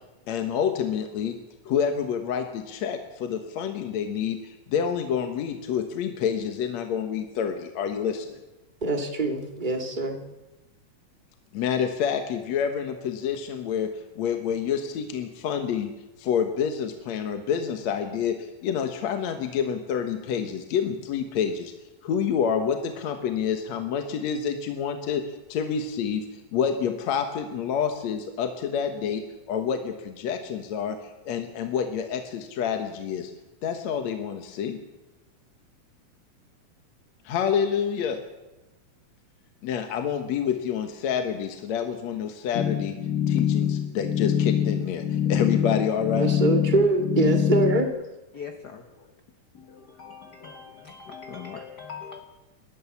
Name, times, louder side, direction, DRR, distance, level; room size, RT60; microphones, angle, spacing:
voice 1, 0.3-1.4 1.7-8.4 11.5-13.9 14.2-15.9 16.2-18.3 18.6-21.7 22.0-25.2 25.5-26.3 26.5-29.2 29.5-31.0 31.3-33.3 33.6-34.8 37.3-38.2 39.6-43.0 43.3-46.3, left 7 dB, 65° left, 6 dB, 2.4 m, -28 dB
voice 2, 8.8-10.2 46.2-47.9, right 2 dB, 20° right, 3 dB, 1.9 m, -24 dB
sound 1, 42.5-47.8, left 9 dB, 85° left, 3.0 m, -25 dB
voice 3, 48.3-49.1 49.5-52.2, left 6 dB, 50° left, 5 dB, 1.4 m, -41 dB
29.0 x 12.5 x 7.2 m, 1.0 s
omnidirectional pair, 3.5 m